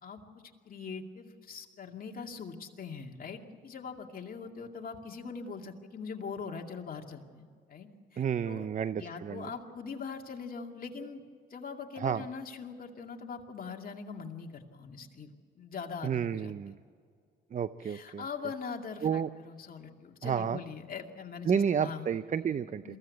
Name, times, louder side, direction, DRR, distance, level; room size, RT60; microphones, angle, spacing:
voice 1, 0.0-8.6 9.0-11.2 11.5-16.5 17.8-22.1 22.5-22.6 22.8-23.0, left 5 dB, 45° left, 2 dB, 2.4 m, -42 dB
voice 2, 8.2-9.5 12.0-12.2 16.0-16.8 17.5-18.3 19.0-19.3 20.2-20.6 21.4-23.0, right 7 dB, 40° right, 14 dB, 0.6 m, -31 dB
22.5 x 16.0 x 8.4 m, 2.1 s
cardioid pair, 90°, 20 cm